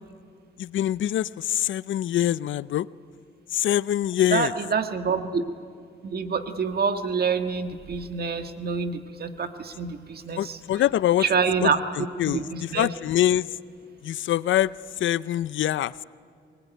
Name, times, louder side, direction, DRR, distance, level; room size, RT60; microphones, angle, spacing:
voice 1, 0.6-2.9 3.5-4.5 10.4-11.3 11.6-11.7 12.0-13.5 14.0-14.7 15.0-15.9, left 12 dB, 75° left, 19 dB, 0.5 m, -24 dB
voice 2, 4.3-5.4 6.0-10.6 11.2-11.8 12.3-12.9, right 5 dB, 55° right, 7 dB, 1.7 m, -26 dB
23.5 x 20.5 x 9.3 m, 2.3 s
cardioid pair, 90°, 20 cm